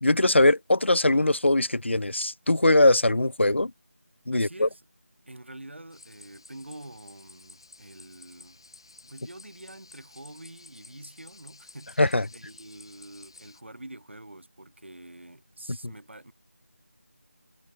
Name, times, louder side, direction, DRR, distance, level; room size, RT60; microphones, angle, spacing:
voice 1, 0.0-3.7 4.3-4.7 12.0-12.2 15.8-15.9, left 2 dB, 55° left, 0.7 m, -21 dB
voice 2, 4.3-4.8 5.3-8.6 9.0-16.3, right 1 dB, 55° right, 7.1 m, -46 dB
sound 1, 5.9-13.6, left 3 dB, 20° left, 3.1 m, -53 dB
figure-of-eight pair, 175°, 8 cm